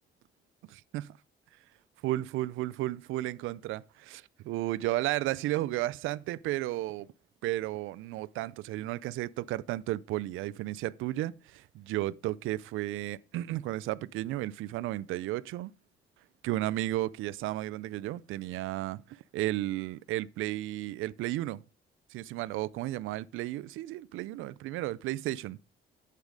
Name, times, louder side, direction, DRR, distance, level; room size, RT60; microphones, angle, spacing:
voice 1, 0.7-1.2 2.0-7.1 7.4-15.7 16.4-21.6 22.1-25.6, right 16 dB, 90° right, 0.5 m, -33 dB
8.5 x 8.2 x 5.1 m
cardioid pair, 90°, 20 cm